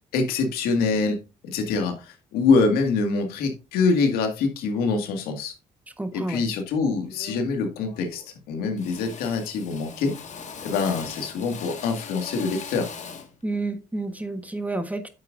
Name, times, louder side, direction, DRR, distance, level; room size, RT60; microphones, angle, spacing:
voice 1, 0.1-1.2 1.4-5.5 6.1-10.2 10.6-12.9, left 4 dB, 90° left, 2.0 m, -24 dB
voice 2, 6.0-6.4 13.4-15.1, right 2 dB, 10° right, 1.3 m, -30 dB
Drill, 6.5-6.7 7.1-7.6 7.9-8.4 8.8-13.4, left 6 dB, 50° left, 1.9 m, -40 dB
9.2 x 7.8 x 2.6 m
supercardioid pair, 75°, 15 cm